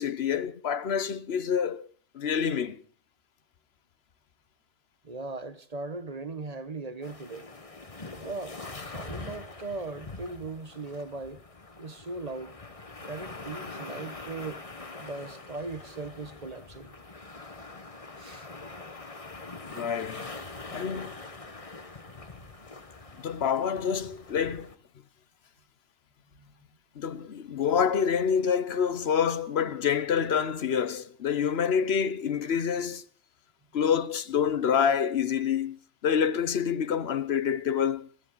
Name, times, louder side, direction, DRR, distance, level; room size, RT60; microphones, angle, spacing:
voice 1, 0.0-1.9 2.1-2.8 19.7-20.2 20.7-21.2 23.2-24.7 27.0-33.0 33.7-38.1, left 7 dB, 55° left, 1.1 m, -27 dB
voice 2, 5.0-7.5 8.2-11.4 11.8-12.6 13.0-14.6 15.0-16.9 18.2-18.5 26.4-26.5, right 3 dB, 35° right, 0.9 m, -38 dB
sound 1, 7.0-24.8, left 3 dB, 25° left, 1.3 m, -44 dB
21.5 x 15.5 x 3.9 m
omnidirectional pair, 1.4 m